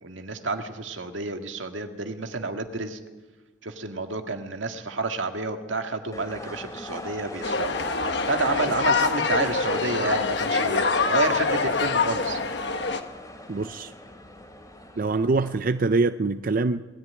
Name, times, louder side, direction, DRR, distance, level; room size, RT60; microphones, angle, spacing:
voice 1, 0.0-3.0 3.6-7.9 8.3-12.4, right 3 dB, 90° right, 6 dB, 1.9 m, -30 dB
sound 1, 6.1-15.5, left 1 dB, 20° left, 2.7 m, -40 dB
sound 2, 7.4-13.0, left 4 dB, 60° left, 1.3 m, -25 dB
voice 2, 13.5-13.9 15.0-16.8, right 3 dB, 45° right, 10 dB, 0.5 m, -24 dB
20.0 x 13.5 x 9.6 m, 1.2 s
head